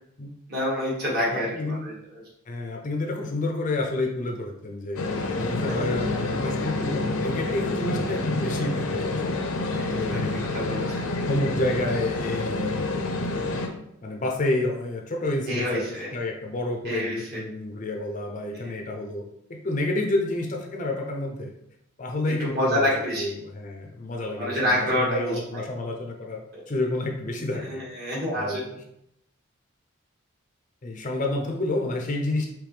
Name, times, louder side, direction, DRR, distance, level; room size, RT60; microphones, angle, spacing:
voice 1, 0.5-1.9 5.7-5.9 9.7-10.0 10.5-11.1 15.5-16.1 16.8-17.2 22.4-23.4 24.4-25.6 26.5-26.6 27.7-28.6, equal, 45° right, -5 dB, 1.6 m, -27 dB
voice 2, 1.3-1.8 2.5-9.5 9.9-10.5 11.0-13.3 14.0-15.9 16.1-19.2 19.5-21.5 22.0-22.9 23.2-26.4 26.7-27.8 28.4-28.8 30.8-32.5, left 2 dB, 35° left, 1 dB, 0.5 m, -29 dB
sound 1, 5.0-13.7, left 2 dB, 80° left, 0.7 m, -28 dB
5.1 x 3.1 x 3.3 m, 0.76 s
head